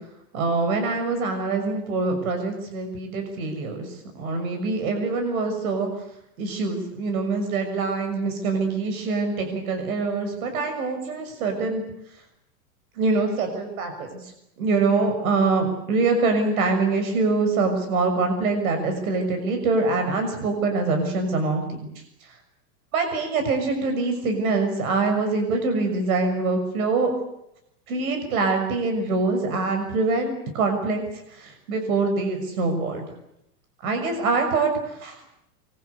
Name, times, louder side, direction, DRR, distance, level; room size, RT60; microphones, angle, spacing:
voice 1, 0.3-3.9 4.1-5.9 6.4-11.8 13.0-14.1 14.6-21.9 22.9-27.1 27.9-31.0 31.3-33.1 33.8-35.2, right 3 dB, 60° right, 6 dB, 6.5 m, -24 dB
25.0 x 23.5 x 8.4 m, 0.79 s
supercardioid pair, 175°, 48 cm